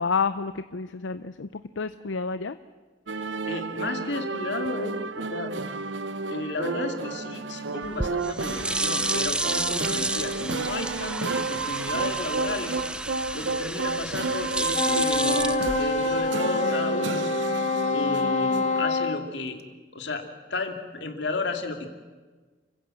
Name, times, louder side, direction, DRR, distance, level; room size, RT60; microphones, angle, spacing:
voice 1, 0.0-1.5 1.8-2.5, left 5 dB, 85° left, 12 dB, 0.6 m, -29 dB
sound 1, 3.1-18.8, right 4 dB, 80° right, 0.9 m, -31 dB
voice 2, 3.4-5.5 6.3-12.8 13.3-15.5 15.8-17.3 17.9-19.6 19.9-20.2 20.5-21.9, left 2 dB, 70° left, 5 dB, 2.5 m, -33 dB
sound 2, 7.8-16.3, right 1 dB, 5° right, 0.6 m, -31 dB
Wind instrument woodwind instrument, 14.7-19.2, left 3 dB, 35° left, 0.7 m, -26 dB
29.5 x 16.0 x 7.8 m, 1.4 s
head